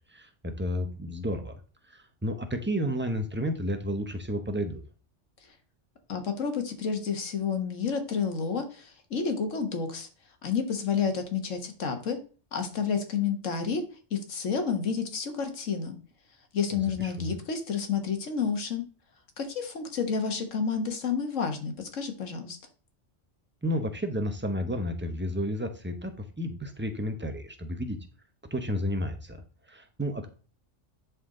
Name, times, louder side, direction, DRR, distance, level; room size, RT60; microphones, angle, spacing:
voice 1, 0.1-1.6 1.9-4.8 17.0-17.3 23.6-28.0 28.5-29.4 29.7-30.3, equal, 10° right, 6 dB, 0.9 m, -31 dB
voice 2, 6.1-10.1 10.4-12.2 12.5-13.8 14.1-15.9 16.5-18.8 19.4-22.6, left 6 dB, 85° left, 6 dB, 1.7 m, -30 dB
11.0 x 4.4 x 3.8 m, 0.37 s
omnidirectional pair, 1.3 m